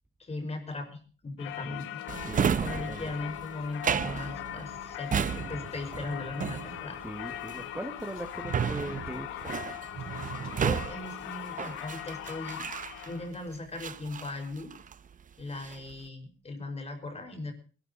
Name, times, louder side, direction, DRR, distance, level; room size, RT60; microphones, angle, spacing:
voice 1, 0.2-2.0 2.6-7.0 10.6-12.7 13.1-14.8 15.4-17.5, left 2 dB, 30° left, 4 dB, 5.3 m, -38 dB
Singing / Church bell, 1.4-13.3, left 13 dB, 90° left, 1.4 m, -40 dB
Drawer open or close, 2.1-13.3 13.8-15.1 15.4-15.9, right 7 dB, 40° right, 0.8 m, -33 dB
voice 2, 2.2-3.1 7.0-9.5, right 1 dB, 10° right, 5 dB, 1.7 m, -40 dB
21.0 x 12.5 x 4.1 m, 0.39 s
cardioid pair, 90°, 20 cm